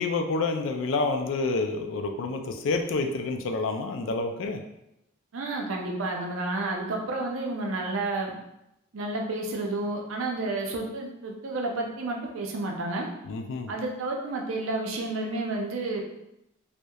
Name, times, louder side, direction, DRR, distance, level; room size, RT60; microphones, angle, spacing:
voice 1, 0.0-4.6 13.2-13.7, left 3 dB, 70° left, 5 dB, 0.3 m, -28 dB
voice 2, 5.3-8.3 8.9-13.1 13.7-16.0, right 2 dB, 85° right, 1 dB, 0.5 m, -30 dB
2.7 x 2.1 x 2.2 m, 0.85 s
head